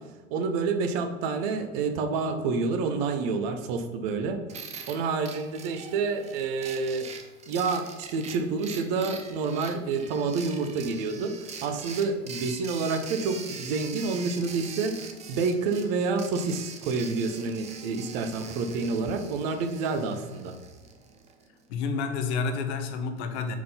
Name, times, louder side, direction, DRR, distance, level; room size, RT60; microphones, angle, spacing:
voice 1, 0.3-4.4 4.9-7.1 7.5-20.5, right 4 dB, 50° right, 6 dB, 0.8 m, -28 dB
sound 1, 4.5-21.5, right 5 dB, 20° right, 0.5 m, -43 dB
voice 2, 21.7-23.6, left 5 dB, 60° left, 7 dB, 1.0 m, -30 dB
4.7 x 3.8 x 5.5 m, 1.2 s
hypercardioid pair, 115°, 38 cm